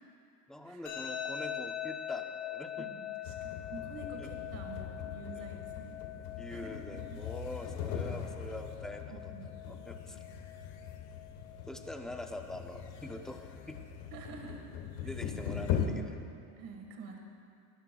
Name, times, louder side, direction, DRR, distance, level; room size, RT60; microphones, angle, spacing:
voice 1, 0.5-2.9 4.2-4.3 5.4-5.5 6.4-9.2 9.7-10.2 11.7-13.8 15.0-16.2, left 1 dB, ahead, 4 dB, 0.3 m, -44 dB
sound 1, 0.9-13.8, left 10 dB, 45° left, 2.3 m, -44 dB
voice 2, 2.8-6.0 6.5-7.2 9.1-9.6 14.1-14.6 15.0-15.2 16.6-17.2, right 4 dB, 55° right, 1 dB, 1.6 m, -48 dB
sound 2, 3.2-15.9, left 8 dB, 70° left, 1.2 m, -40 dB
19.5 x 12.5 x 2.3 m, 2.4 s
cardioid pair, 145°, 41 cm